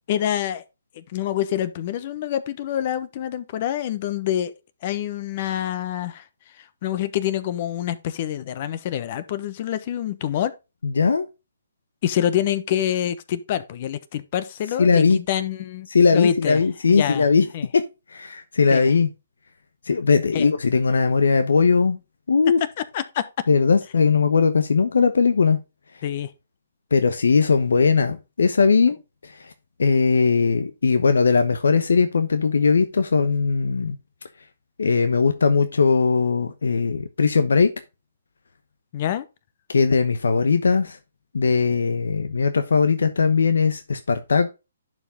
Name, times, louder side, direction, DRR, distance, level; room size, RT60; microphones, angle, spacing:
voice 1, 0.1-0.6 0.9-4.5 4.8-6.2 6.6-10.5 12.0-17.3 17.5-17.7 18.7-18.9 20.3-20.5 22.6-23.4 26.0-26.3 38.9-39.2, left 11 dB, 40° left, 1.1 m, -26 dB
voice 2, 10.8-11.2 14.8-15.2 15.9-17.4 17.7-17.8 18.1-19.1 19.9-22.0 22.3-22.6 23.5-25.6 26.9-29.0 29.8-34.0 34.8-37.7 39.7-41.0 41.3-44.5, left 5 dB, 75° left, 1.0 m, -19 dB
11.0 x 4.9 x 3.6 m
hypercardioid pair, 140°, 0 cm